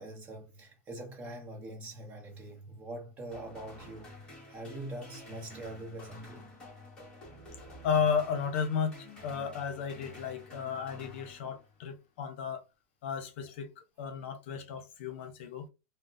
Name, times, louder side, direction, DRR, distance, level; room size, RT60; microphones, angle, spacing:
voice 1, 0.0-4.1 4.5-6.5, right 1 dB, 20° right, 0.9 m, -43 dB
sound 1, 3.3-11.9, left 1 dB, 10° left, 1.0 m, -50 dB
voice 2, 7.6-12.7 13.0-15.7, left 6 dB, 55° left, 0.8 m, -34 dB
3.5 x 2.0 x 2.6 m
supercardioid pair, 165°, 8 cm